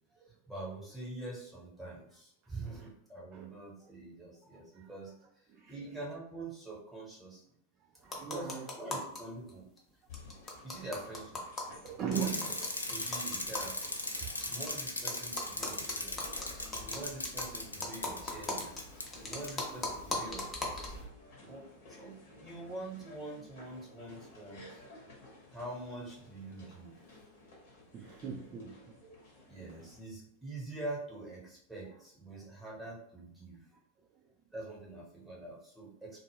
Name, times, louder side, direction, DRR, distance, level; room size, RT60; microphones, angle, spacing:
voice 1, 0.5-5.1 5.7-7.4 8.2-9.6 10.6-11.4 12.0-12.4 12.9-14.0 14.5-16.2 16.8-18.7 19.2-20.9 21.4-21.7 22.0-24.8 25.5-26.9 29.5-33.6 34.5-36.2, right 2 dB, 5° right, -4 dB, 1.0 m, -45 dB
voice 2, 4.4-4.9 5.5-5.7 8.0-8.7 11.7-12.6 14.2-14.3 19.2-19.3 25.2-25.4 27.9-29.1, right 7 dB, 30° right, 1 dB, 0.3 m, -40 dB
sound 1, 8.0-9.2 9.5-9.6 9.8-9.9 10.1-14.7 15.1-21.1, left 2 dB, 20° left, 0.6 m, -40 dB
sound 2, 10.1-30.0, left 2 dB, 55° left, 0.9 m, -56 dB
Bicycle, 12.1-19.1 19.4-19.5, left 2 dB, 80° left, 0.3 m, -38 dB
2.0 x 2.0 x 3.4 m, 0.69 s
figure-of-eight pair, 90°, 0 cm